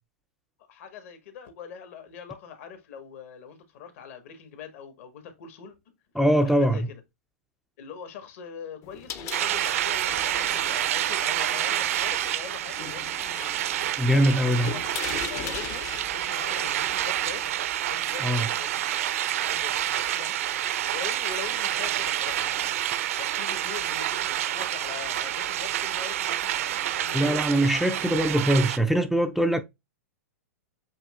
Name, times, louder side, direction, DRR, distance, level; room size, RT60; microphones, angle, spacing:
voice 1, 0.7-5.9 6.3-6.8 7.8-13.3 13.8-15.9 16.1-17.5 17.8-20.4 20.9-22.8 23.2-26.5 26.8-27.8, left 7 dB, 60° left, 1.5 m, -42 dB
voice 2, 6.2-6.9 14.0-14.7 18.2-18.5 27.1-29.6, right 1 dB, ahead, 0.4 m, -22 dB
sound 1, 8.8-17.6, left 8 dB, 35° left, 0.7 m, -41 dB
sound 2, 9.3-28.8, right 12 dB, 65° right, 0.6 m, -28 dB
7.5 x 2.8 x 2.4 m
hypercardioid pair, 115°, 8 cm